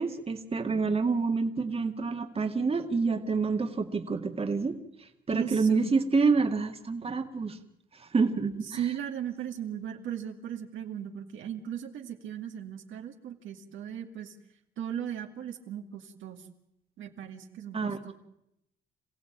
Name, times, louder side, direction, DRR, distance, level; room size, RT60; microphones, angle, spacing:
voice 1, 0.0-7.6 7.9-8.8 17.7-18.1, right 4 dB, 30° right, 5 dB, 1.9 m, -28 dB
voice 2, 5.3-6.0 8.7-14.3 14.8-16.4 17.0-18.1, right 9 dB, 75° right, 3 dB, 2.4 m, -37 dB
27.0 x 15.5 x 8.8 m, 0.83 s
cardioid pair, 90°, 20 cm